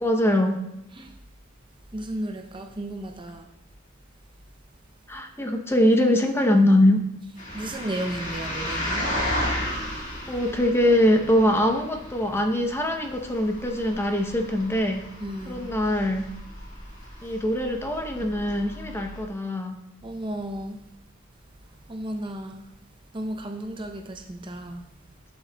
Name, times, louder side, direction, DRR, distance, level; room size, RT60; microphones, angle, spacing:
voice 1, 0.0-0.6 5.1-7.0 10.3-15.0 15.5-16.3 17.2-19.8, left 1 dB, 10° left, 4 dB, 0.7 m, -22 dB
voice 2, 1.9-3.5 7.5-9.0 15.2-15.7 20.0-20.8 21.9-22.6 23.1-24.8, right 1 dB, 25° right, 4 dB, 0.6 m, -33 dB
sound 1, 7.4-19.2, left 1 dB, 40° left, 1.9 m, -34 dB
9.9 x 7.7 x 2.2 m, 0.81 s
head